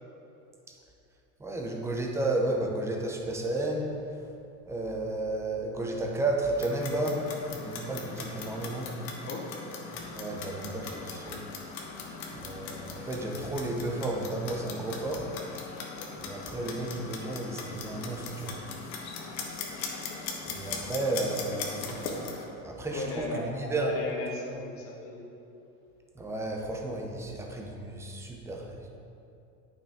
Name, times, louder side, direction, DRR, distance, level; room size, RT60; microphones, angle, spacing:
voice 1, 1.4-4.2 4.7-8.9 9.9-11.4 12.3-15.3 16.2-18.6 20.4-22.0 22.4-23.9 26.1-29.0, right 2 dB, 5° right, 1 dB, 0.6 m, -33 dB
Clock, 6.4-22.4, left 4 dB, 85° left, 1.4 m, -40 dB
voice 2, 22.8-25.2, left 2 dB, 25° left, -2 dB, 1.2 m, -37 dB
8.7 x 5.7 x 3.5 m, 2.8 s
hypercardioid pair, 115°, 49 cm